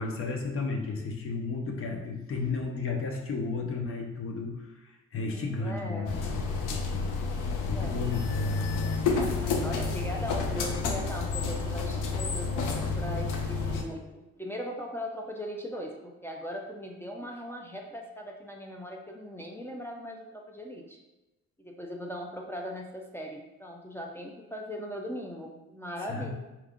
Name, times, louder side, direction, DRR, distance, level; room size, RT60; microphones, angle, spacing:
voice 1, 0.0-4.7 5.1-7.1 7.6-8.2 26.1-26.3, left 4 dB, 45° left, 2 dB, 0.8 m, -33 dB
voice 2, 5.3-6.2 7.6-8.0 9.1-21.0 21.6-26.3, equal, 10° left, 0 dB, 0.5 m, -39 dB
sound 1, 6.1-13.8, left 4 dB, 85° left, 0.6 m, -30 dB
4.5 x 2.3 x 3.6 m, 1.0 s
cardioid pair, 90°, 30 cm